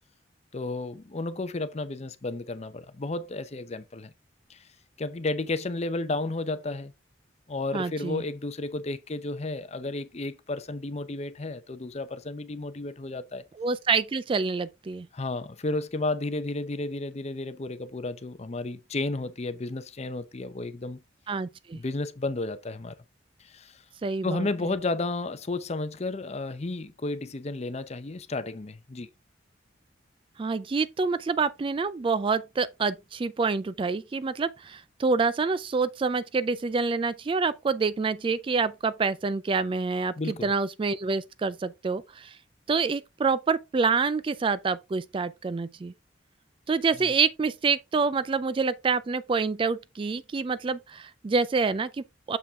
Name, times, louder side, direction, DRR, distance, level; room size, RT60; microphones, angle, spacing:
voice 1, 0.5-4.1 4.5-4.6 5.0-6.9 7.5-13.4 15.1-21.0 21.7-23.0 23.4-23.8 24.2-29.1 40.2-40.5 47.0-47.1, left 2 dB, 35° left, 0.6 m, -32 dB
voice 2, 7.7-8.2 13.6-15.1 21.3-21.8 24.0-24.5 30.4-40.1 40.4-42.4 42.7-45.9 46.7-52.4, right 4 dB, 30° right, 0.3 m, -27 dB
6.9 x 5.3 x 3.5 m
head